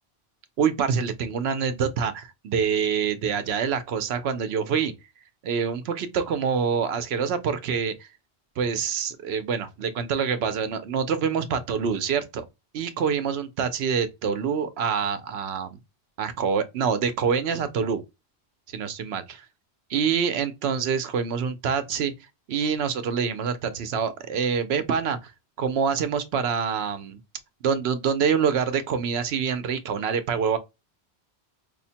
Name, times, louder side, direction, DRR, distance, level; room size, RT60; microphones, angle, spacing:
voice 1, 0.6-4.9 5.4-8.1 8.6-12.5 12.7-15.8 16.2-18.0 18.7-19.5 19.9-22.1 22.5-25.3 25.6-27.2 27.6-30.6, right 6 dB, 75° right, 0.8 m, -26 dB
4.7 x 2.1 x 2.7 m
omnidirectional pair, 1.1 m